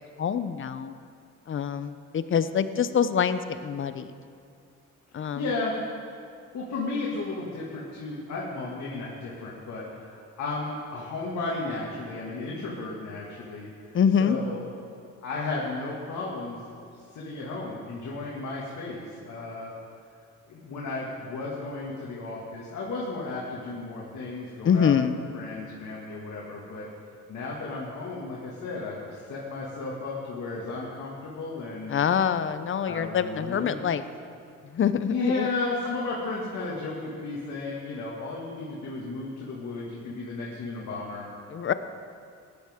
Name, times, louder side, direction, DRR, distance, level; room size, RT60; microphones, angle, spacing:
voice 1, 0.2-0.9 1.5-4.1 5.1-5.4 13.9-14.4 24.6-25.1 31.9-34.0 34.7-35.5 41.5-41.7, left 7 dB, 45° left, 12 dB, 0.6 m, -25 dB
voice 2, 5.1-5.7 6.5-13.7 14.2-14.6 15.2-16.6 17.1-19.7 20.5-25.0 25.3-26.9 27.3-31.9 32.8-33.8 35.1-41.3, left 3 dB, 70° left, -5 dB, 2.1 m, -34 dB
16.5 x 10.5 x 3.7 m, 2.4 s
cardioid pair, 90°, 30 cm